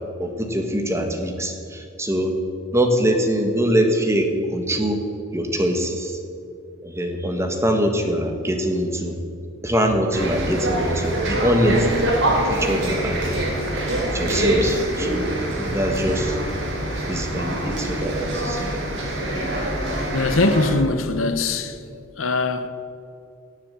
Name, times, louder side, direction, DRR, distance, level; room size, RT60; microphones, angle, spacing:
voice 1, 0.2-2.3 2.7-5.0 5.3-6.2 6.8-9.1 9.6-11.9 12.4-13.3 14.1-15.3 15.7-16.4 17.1-18.7, equal, 15° right, 1.3 m, -23 dB
sound 1, 10.1-20.7, right 1 dB, 65° right, 3.4 m, -25 dB
voice 2, 20.1-21.8 22.2-22.7, left 3 dB, 80° left, 1.0 m, -21 dB
18.0 x 7.3 x 7.5 m
head